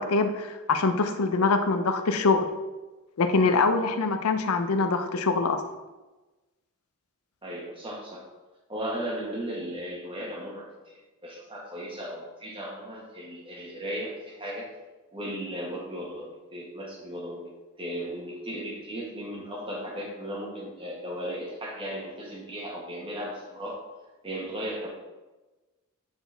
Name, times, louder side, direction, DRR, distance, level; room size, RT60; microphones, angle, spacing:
voice 1, 0.0-2.5 3.2-5.6, left 3 dB, 85° left, 8 dB, 0.6 m, -24 dB
voice 2, 7.4-8.3 8.7-14.7 15.1-17.5 17.8-23.8 24.2-24.9, equal, 25° right, -2 dB, 1.4 m, -36 dB
7.9 x 4.4 x 3.4 m, 1.1 s
head